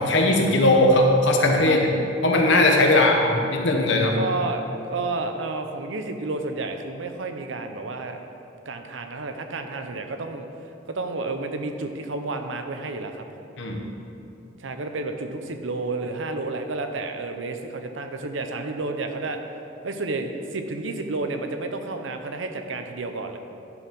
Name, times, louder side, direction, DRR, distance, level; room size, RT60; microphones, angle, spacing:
voice 1, 0.0-1.9 2.2-4.2 13.6-13.8, left 2 dB, 70° left, 1 dB, 1.1 m, -19 dB
voice 2, 4.1-8.2 8.7-10.5 10.9-13.2 14.6-19.4 19.8-23.4, right 3 dB, 80° right, 6 dB, 0.7 m, -31 dB
11.0 x 4.7 x 5.3 m, 2.7 s
head